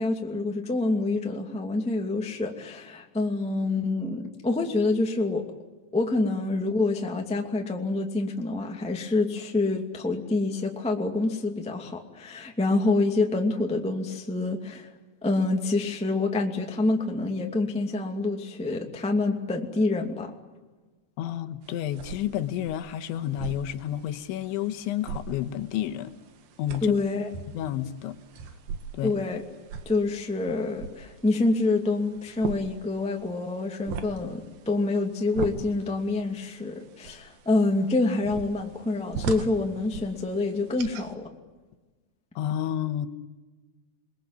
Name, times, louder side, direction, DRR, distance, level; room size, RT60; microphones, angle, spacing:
voice 1, 0.0-5.5 5.9-14.9 15.2-20.3 26.8-27.3 29.0-29.4 29.8-41.3, left 2 dB, 5° left, 2 dB, 0.6 m, -27 dB
voice 2, 21.2-26.1 26.6-27.0 27.5-28.2 28.9-29.2 42.4-43.1, left 11 dB, 80° left, 8 dB, 3.5 m, -30 dB
sound 1, 21.6-41.1, right 6 dB, 60° right, 3.0 m, -41 dB
29.0 x 22.0 x 9.4 m, 1.3 s
omnidirectional pair, 5.4 m